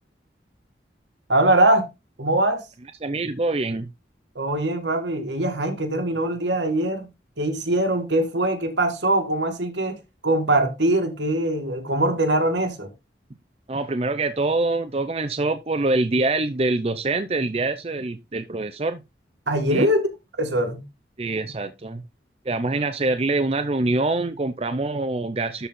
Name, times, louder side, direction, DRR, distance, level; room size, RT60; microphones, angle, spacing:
voice 1, 1.3-1.8 2.2-2.6 4.4-7.1 7.4-10.0 10.2-12.9 19.5-20.0 20.4-20.8, right 1 dB, 80° right, 1.8 m, -22 dB
voice 2, 3.0-3.9 13.7-19.0 19.7-19.9 21.2-22.0 22.5-25.7, right 2 dB, 35° right, 0.6 m, -25 dB
12.5 x 4.2 x 3.7 m
head